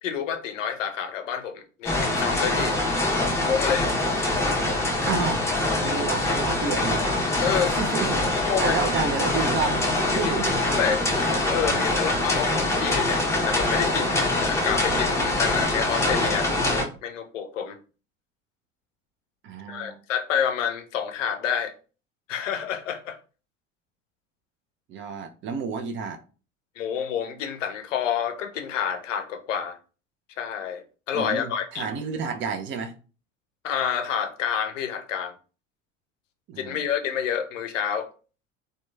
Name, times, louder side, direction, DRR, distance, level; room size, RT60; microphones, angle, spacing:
voice 1, 0.0-2.8 3.4-3.9 7.4-7.8 8.5-8.7 10.2-10.3 10.7-11.0 11.5-16.5 17.0-17.8 19.7-21.7 22.3-23.2 26.8-29.8 30.4-31.9 33.6-35.3 36.6-38.1, left 8 dB, 85° left, 0.5 m, -28 dB
sound 1, 1.8-16.8, left 2 dB, 5° left, 0.6 m, -24 dB
voice 2, 5.1-5.4 5.8-7.0 7.7-8.2 8.6-9.8 10.1-10.6 19.4-20.0 24.9-26.2 31.1-32.9 36.5-36.8, right 5 dB, 35° right, 0.4 m, -30 dB
sound 2, 8.8-14.6, right 2 dB, 55° right, 1.3 m, -43 dB
2.8 x 2.1 x 2.2 m
hypercardioid pair, 70°, 37 cm